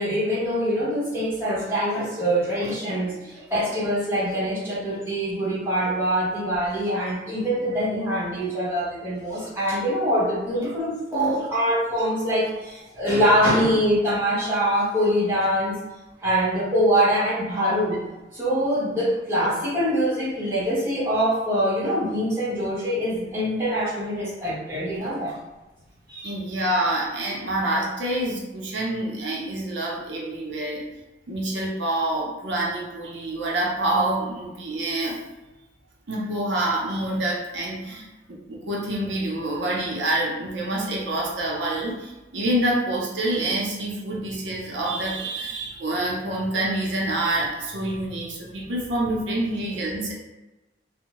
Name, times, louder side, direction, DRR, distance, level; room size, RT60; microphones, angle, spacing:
voice 1, 0.0-15.8 16.2-18.0 18.3-25.3 26.1-26.4, equal, 15° right, -9 dB, 1.1 m, -24 dB
voice 2, 26.2-30.8 31.3-35.2 36.1-38.1 38.5-50.1, right 1 dB, 90° right, -3 dB, 0.6 m, -27 dB
2.6 x 2.1 x 2.9 m, 1.1 s
head